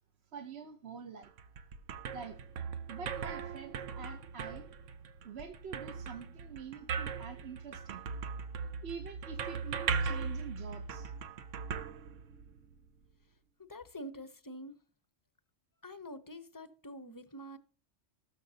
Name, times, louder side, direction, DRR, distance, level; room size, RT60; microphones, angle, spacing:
voice 1, 0.3-1.3 2.1-2.4 2.9-4.7 5.2-8.1 8.8-11.1, right 6 dB, 60° right, 1.2 m, -46 dB
sound 1, 1.2-12.7, right 6 dB, 80° right, 1.1 m, -39 dB
voice 2, 13.7-14.7 15.8-17.6, equal, 20° left, 0.6 m, -46 dB
19.5 x 6.8 x 2.8 m
omnidirectional pair, 1.3 m